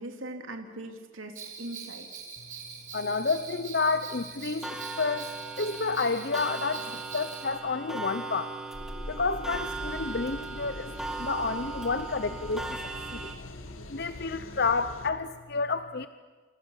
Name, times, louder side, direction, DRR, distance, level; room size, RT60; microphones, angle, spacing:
voice 1, 0.0-2.1, right 1 dB, 80° right, 4 dB, 2.9 m, -40 dB
Bell, 1.3-7.5, right 6 dB, 40° right, 5.6 m, -43 dB
voice 2, 2.9-8.5 9.1-10.9 11.2-12.8 13.1-13.3 13.9-16.1, left 4 dB, 50° left, 11 dB, 0.8 m, -30 dB
Clock, 4.6-13.4, right 3 dB, ahead, 2.2 m, -38 dB
sound 1, 8.7-15.1, left 1 dB, 85° left, 2.3 m, -43 dB
28.0 x 27.5 x 7.3 m, 1.4 s
head